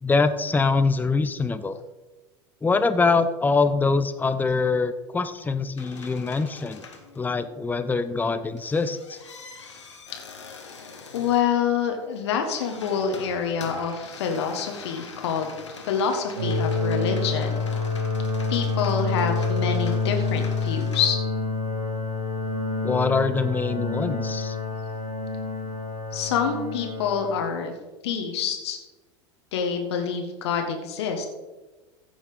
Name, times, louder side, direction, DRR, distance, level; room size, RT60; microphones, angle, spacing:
voice 1, 0.0-1.8 2.6-6.9 7.2-9.2 22.8-24.6, left 4 dB, 10° left, 11 dB, 0.8 m, -24 dB
sound 1, 5.8-7.8 8.3-21.1, left 5 dB, 85° left, 1.9 m, -44 dB
voice 2, 11.1-15.5 15.9-17.6 18.5-21.2 26.1-27.7 28.0-28.8 29.5-31.3, left 7 dB, 65° left, 4 dB, 1.7 m, -26 dB
sound 2, 16.3-27.4, left 3 dB, 80° right, 3.1 m, -27 dB
15.0 x 6.4 x 5.1 m, 1.2 s
figure-of-eight pair, 85°, 15 cm